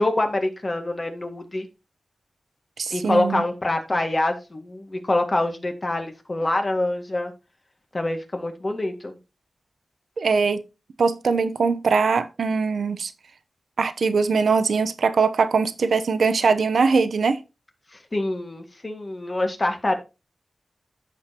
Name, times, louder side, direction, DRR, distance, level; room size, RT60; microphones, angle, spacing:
voice 1, 0.0-1.7 2.9-7.3 7.9-9.2 17.9-20.0, left 2 dB, 35° left, 1.8 m, -25 dB
voice 2, 2.8-3.4 10.2-10.6 11.0-13.1 13.8-17.4, right 5 dB, 85° right, 0.8 m, -21 dB
14.0 x 5.1 x 2.9 m
wide cardioid pair, 75°, 0 cm